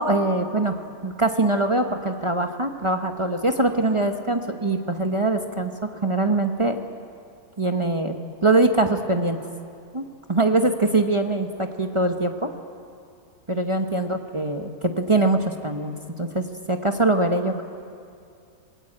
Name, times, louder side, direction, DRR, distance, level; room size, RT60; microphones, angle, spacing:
voice 1, 0.0-5.7 6.0-6.8 7.6-8.1 8.4-9.4 9.9-12.5 13.5-15.9 16.2-17.6, right 2 dB, 20° right, 4 dB, 1.0 m, -23 dB
27.0 x 20.0 x 8.8 m, 2.5 s
omnidirectional pair, 1.6 m